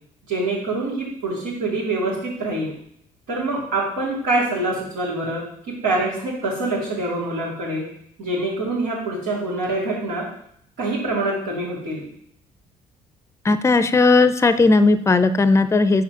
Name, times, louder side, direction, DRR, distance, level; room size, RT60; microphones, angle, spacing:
voice 1, 0.3-2.7 3.3-5.4 5.8-7.9 8.2-10.2 10.8-12.0, right 2 dB, 85° right, -8 dB, 2.6 m, -25 dB
voice 2, 13.4-16.0, left 3 dB, 20° left, 12 dB, 0.5 m, -16 dB
4.8 x 4.3 x 5.8 m, 0.68 s
cardioid pair, 80°, 15 cm